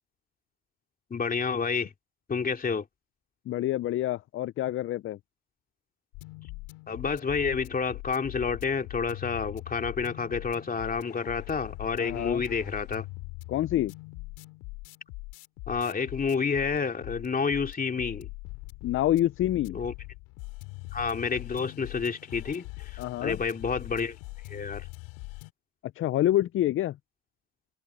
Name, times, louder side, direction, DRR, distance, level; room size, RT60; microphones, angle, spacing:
voice 1, 1.1-1.9 2.3-2.8 6.9-13.0 15.7-18.3 19.7-19.9 20.9-24.2 24.5-24.9, left 5 dB, 30° left, 2.8 m, -29 dB
voice 2, 3.5-5.2 12.0-12.4 13.5-13.9 18.8-19.8 23.0-23.4 25.9-27.0, left 13 dB, 45° left, 0.5 m, -27 dB
sound 1, 6.1-25.5, left 25 dB, 85° left, 3.8 m, -42 dB
supercardioid pair, 85°, 30 cm